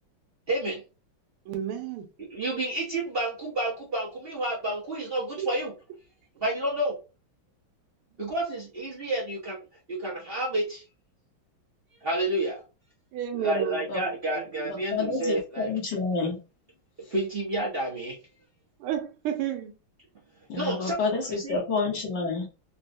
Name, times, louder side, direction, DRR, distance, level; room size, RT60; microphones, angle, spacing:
voice 1, 0.5-0.8 2.3-5.7 6.4-6.9 8.2-9.6 9.9-10.8 12.0-12.6 13.3-15.7 17.1-18.2 20.5-21.6, right 1 dB, 40° right, 0.8 m, -30 dB
voice 2, 1.4-2.1 5.4-5.5 13.1-14.7 18.8-19.7, right 9 dB, 85° right, 1.5 m, -32 dB
voice 3, 14.7-16.4 20.5-22.5, left 4 dB, 60° left, 1.4 m, -29 dB
3.9 x 2.2 x 2.6 m
omnidirectional pair, 2.4 m